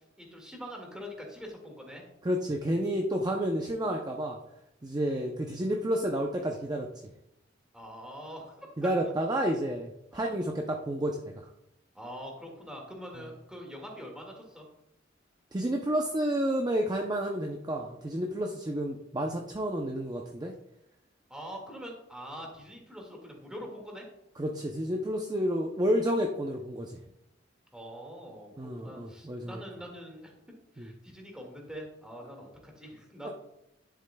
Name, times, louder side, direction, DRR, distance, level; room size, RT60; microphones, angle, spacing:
voice 1, 0.2-2.0 7.7-8.9 10.1-10.3 11.9-14.6 21.3-24.1 27.7-28.5 28.8-30.3 30.7-33.3, equal, 5° right, 0 dB, 1.9 m, -44 dB
voice 2, 2.2-4.4 4.8-6.9 8.8-11.5 15.5-20.5 24.4-27.0 28.6-29.6 30.8-30.9 33.2-33.3, equal, 20° right, 2 dB, 0.6 m, -30 dB
10.5 x 7.4 x 2.2 m, 0.83 s
head